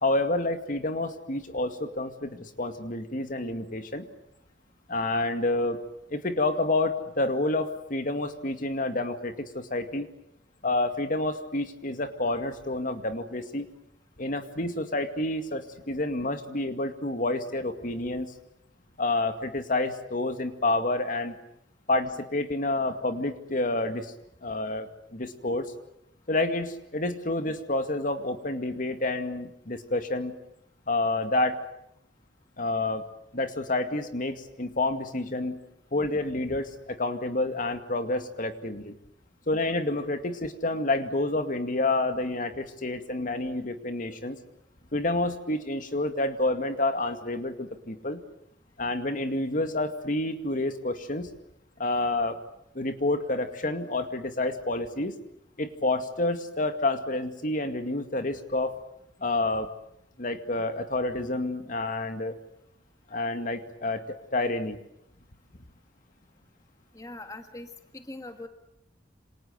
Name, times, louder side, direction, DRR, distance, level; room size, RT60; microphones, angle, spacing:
voice 1, 0.0-4.1 4.9-5.8 6.1-10.1 10.6-13.7 14.2-18.3 19.0-21.4 21.9-24.1 24.4-25.7 26.3-30.4 30.9-31.6 32.6-33.0 33.3-35.6 35.9-38.9 39.5-44.4 44.9-48.2 48.8-51.3 51.8-52.4 52.7-55.1 55.6-58.8 59.2-59.7 60.2-62.3 63.1-64.8, left 2 dB, 45° left, 8 dB, 2.2 m, -29 dB
voice 2, 66.9-68.5, left 2 dB, 20° left, 6 dB, 1.7 m, -42 dB
28.0 x 26.5 x 8.1 m, 0.78 s
head